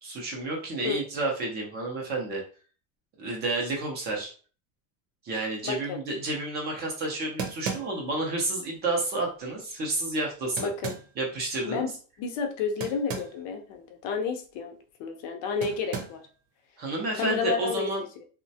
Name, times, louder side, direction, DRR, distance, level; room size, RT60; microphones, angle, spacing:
voice 1, 0.0-2.4 3.2-4.3 5.2-10.7 11.2-11.9 16.8-18.0, right 2 dB, 20° right, -1 dB, 0.4 m, -30 dB
voice 2, 5.6-6.0 10.6-11.0 11.7-11.9 12.2-16.2 17.2-18.1, left 5 dB, 50° left, 5 dB, 0.5 m, -31 dB
sound 1, 6.8-6.9 7.4-8.2 10.6-11.1 12.8-13.4 13.7-13.8 15.6-16.3, right 6 dB, 85° right, 0.9 m, -35 dB
3.0 x 2.1 x 2.7 m, 0.39 s
cardioid pair, 175°, 47 cm